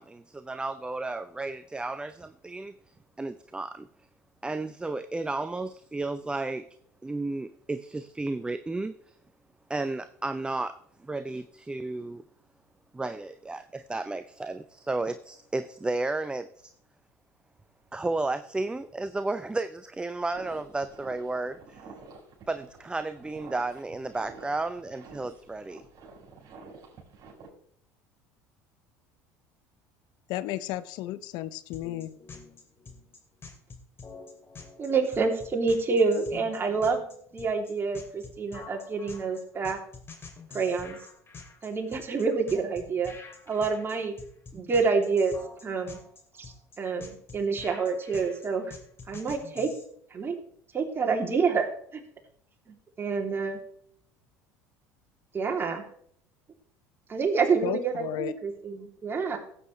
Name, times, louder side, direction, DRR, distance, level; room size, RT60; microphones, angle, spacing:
voice 1, 0.0-2.7 3.2-3.9 4.4-6.7 7.0-9.2 9.7-12.2 12.9-16.7 17.9-21.8 22.5-25.9, right 2 dB, 10° right, 12 dB, 0.5 m, -33 dB
sound 1, 20.3-27.5, right 4 dB, 50° right, 4.4 m, -49 dB
voice 2, 30.3-32.2 57.6-58.3, left 14 dB, 65° left, 16 dB, 0.6 m, -33 dB
sound 2, 31.7-49.8, left 4 dB, 30° left, 2.5 m, -46 dB
voice 3, 34.8-37.0 37.3-39.8 40.5-41.0 41.6-43.1 43.5-44.2 44.5-45.3 45.6-46.0 46.4-48.7 49.1-49.7 50.1-50.3 50.7-51.7 52.7-53.6 55.3-55.8 57.1-59.4, right 4 dB, 30° right, 1 dB, 2.7 m, -27 dB
16.0 x 8.3 x 3.2 m, 0.64 s
hypercardioid pair, 75°, 8 cm